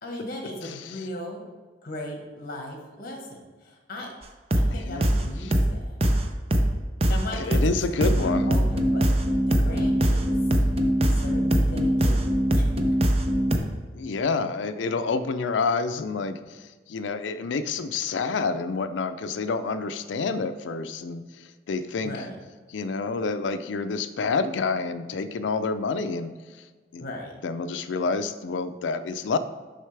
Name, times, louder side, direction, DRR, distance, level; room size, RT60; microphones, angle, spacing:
voice 1, 0.0-1.4 1.8-3.4 3.6-4.1 4.5-6.0 7.0-9.1 9.5-10.4 11.2-12.3 12.5-12.7 22.0-22.4 27.0-27.3, left 1 dB, 55° left, 1 dB, 1.4 m, -37 dB
voice 2, 0.6-1.0 4.7-5.1 5.4-5.5 7.3-8.5 13.9-16.6 16.9-21.2 21.7-22.2 22.7-26.3 26.9-27.1 27.4-29.4, left 4 dB, 85° left, 11 dB, 0.4 m, -28 dB
sound 1, 4.5-4.7 5.0-5.2 5.5-5.7 6.0-6.2 6.5-6.7 7.0-7.2 7.5-7.7 8.0-13.6, equal, 35° right, 0.6 m, -22 dB
6.5 x 5.5 x 3.3 m, 1.4 s
head